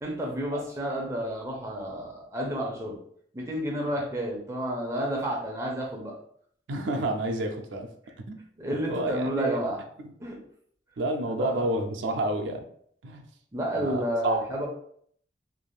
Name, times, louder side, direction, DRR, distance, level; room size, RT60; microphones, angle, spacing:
voice 1, 0.0-3.0 3.3-6.1 8.6-9.8 10.2-10.4 11.3-11.7 13.5-14.7, equal, 15° right, -2 dB, 0.6 m, -30 dB
voice 2, 6.7-7.9 8.3-8.4 8.9-9.7 11.0-12.6 13.0-13.2 13.8-14.4, right 1 dB, 85° right, 5 dB, 0.4 m, -29 dB
3.3 x 2.5 x 2.3 m, 0.64 s
head